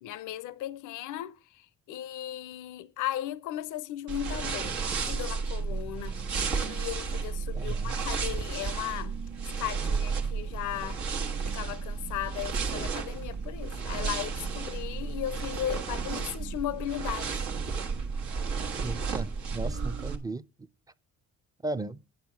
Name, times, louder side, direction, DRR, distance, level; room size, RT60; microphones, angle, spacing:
voice 1, 0.0-9.2 9.6-11.0 11.4-17.5, left 13 dB, 85° left, 0.6 m, -36 dB
sound 1, 4.1-20.2, right 5 dB, 80° right, 1.3 m, -32 dB
voice 2, 7.5-8.0 18.8-20.4 21.6-22.0, right 2 dB, 10° right, 0.5 m, -36 dB
8.8 x 6.1 x 5.9 m
cardioid pair, 90°, 30 cm